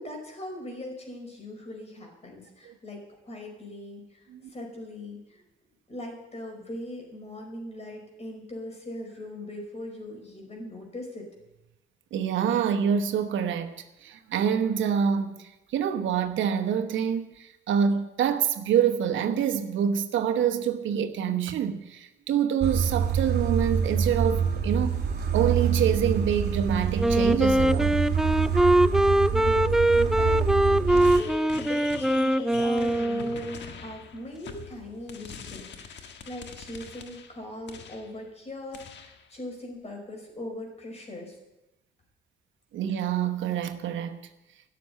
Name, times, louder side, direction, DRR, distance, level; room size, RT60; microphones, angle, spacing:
voice 1, 0.0-5.4 5.9-11.3 29.3-33.5 33.8-41.3, left 1 dB, 35° left, 5.1 m, -40 dB
voice 2, 12.1-13.7 14.0-25.0 25.3-28.0 42.7-44.2, right 8 dB, 75° right, 1.1 m, -26 dB
sound 1, 22.6-31.2, right 7 dB, 55° right, 2.9 m, -26 dB
Wind instrument woodwind instrument, 27.0-33.7, right 1 dB, ahead, 0.4 m, -22 dB
sound 2, 30.9-38.2 38.7-39.3, left 6 dB, 65° left, 1.4 m, -43 dB
13.0 x 6.9 x 10.0 m
cardioid pair, 90°, 20 cm